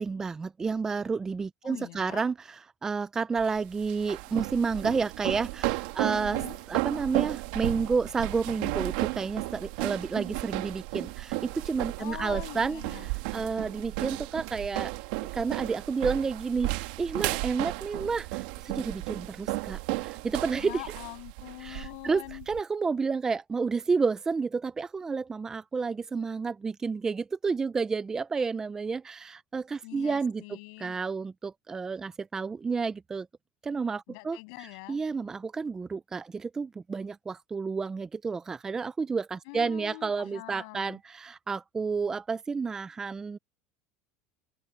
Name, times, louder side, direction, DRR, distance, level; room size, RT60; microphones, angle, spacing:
voice 1, 0.0-6.4 6.7-14.9 15.3-20.9 21.6-30.4 30.8-33.3 33.6-43.4, right 5 dB, 15° right, 0.4 m, -31 dB
voice 2, 1.6-2.3 6.1-6.6 12.0-13.1 20.6-22.5 29.8-31.0 34.1-35.0 39.5-41.0, left 34 dB, 70° left, 7.7 m, -43 dB
sound 1, 3.4-22.6, right 21 dB, 75° right, 1.6 m, -34 dB
open air
cardioid pair, 160°, 4 cm